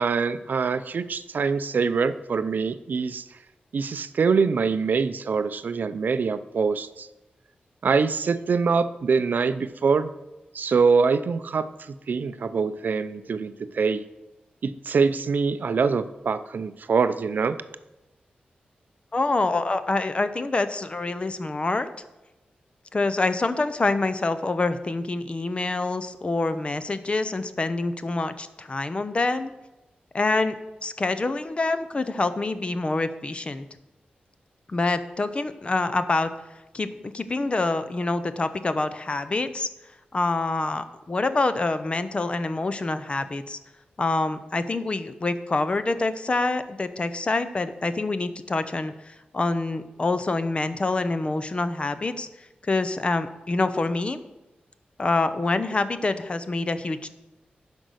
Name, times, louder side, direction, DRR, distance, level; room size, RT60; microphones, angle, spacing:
voice 1, 0.0-3.3 3.7-7.1 7.8-10.1 10.5-14.0 14.6-17.6, right 5 dB, 65° right, 12 dB, 0.5 m, -24 dB
voice 2, 19.1-21.9 22.9-29.5 30.1-30.5 30.8-33.7 34.7-36.3 36.7-39.7 40.1-43.6 44.0-52.3 52.6-54.2 55.0-57.1, left 3 dB, 35° left, 11 dB, 0.6 m, -26 dB
10.5 x 5.3 x 6.3 m, 1.0 s
wide cardioid pair, 90°, 3 cm